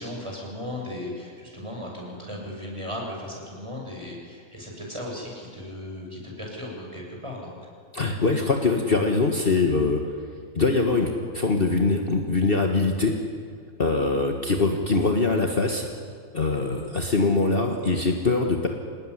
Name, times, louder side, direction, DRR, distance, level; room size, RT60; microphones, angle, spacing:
voice 1, 0.0-7.6, left 1 dB, 20° right, -2 dB, 7.2 m, -36 dB
voice 2, 7.9-10.0 10.6-13.1 13.8-15.9 16.3-18.7, left 3 dB, 40° left, 2 dB, 1.8 m, -23 dB
26.5 x 19.5 x 9.9 m, 2.1 s
omnidirectional pair, 1.5 m